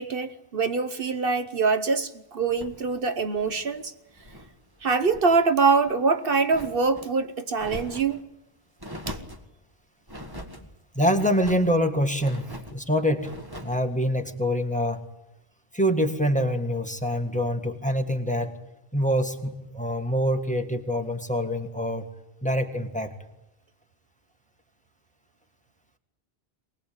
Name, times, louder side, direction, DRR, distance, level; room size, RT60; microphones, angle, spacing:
voice 1, 0.0-3.9 4.8-8.2 9.1-9.2, right 4 dB, 65° right, 1.2 m, -24 dB
sound 1, 2.5-4.5 4.9-5.4 5.8-7.1 7.5-8.2 8.8-9.5 10.1-10.6 11.1-11.7 12.2-12.8 13.2-13.8, equal, 20° right, 2.0 m, -42 dB
voice 2, 11.0-13.3 13.6-15.0 15.7-18.5 18.9-22.1 22.4-23.1, equal, 5° left, 1.8 m, -25 dB
23.5 x 19.5 x 8.8 m
omnidirectional pair, 1.0 m